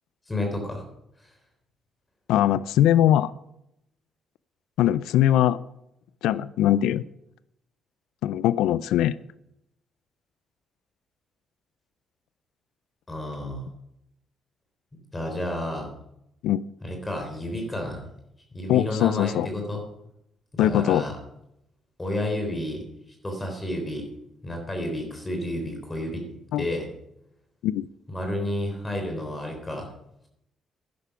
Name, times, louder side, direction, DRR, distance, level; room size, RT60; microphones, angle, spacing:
voice 1, 0.3-0.8 13.1-13.7 15.1-15.9 16.8-18.1 18.5-19.8 20.5-21.1 22.0-22.8 23.2-24.1 24.4-26.3 26.6-26.9 28.1-29.9, left 1 dB, 20° left, 2 dB, 3.6 m, -31 dB
voice 2, 2.3-3.3 4.8-5.6 6.2-7.0 8.2-9.1 16.4-16.7 18.7-19.5 20.6-21.0 26.5-26.6 27.6-27.9, left 12 dB, 90° left, 18 dB, 0.4 m, -21 dB
12.0 x 10.5 x 5.8 m, 0.80 s
cardioid pair, 90°, 0 cm